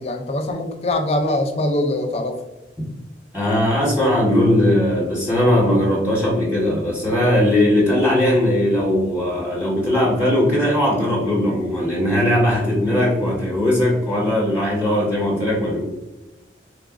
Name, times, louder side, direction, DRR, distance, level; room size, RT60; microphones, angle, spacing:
voice 1, 0.0-2.3, left 1 dB, 35° left, 4 dB, 0.4 m, -22 dB
voice 2, 3.3-15.8, left 1 dB, 10° right, -6 dB, 1.0 m, -19 dB
4.0 x 2.5 x 2.3 m, 1.1 s
head